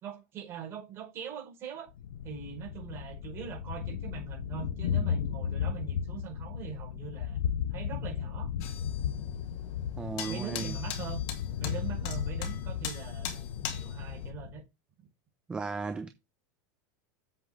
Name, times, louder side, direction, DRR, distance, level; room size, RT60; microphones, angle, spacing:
voice 1, 0.0-1.9 2.2-7.4 7.7-8.5 10.3-11.2 11.6-14.6, right 8 dB, 25° right, 4.7 m, -42 dB
Thunder, 2.0-14.6, left 8 dB, 85° left, 0.8 m, -35 dB
sound 1, 8.6-14.3, left 8 dB, 40° left, 1.5 m, -41 dB
voice 2, 10.0-10.7 15.5-16.1, right 4 dB, 10° right, 0.5 m, -35 dB
8.0 x 7.3 x 3.8 m
supercardioid pair, 175°, 10 cm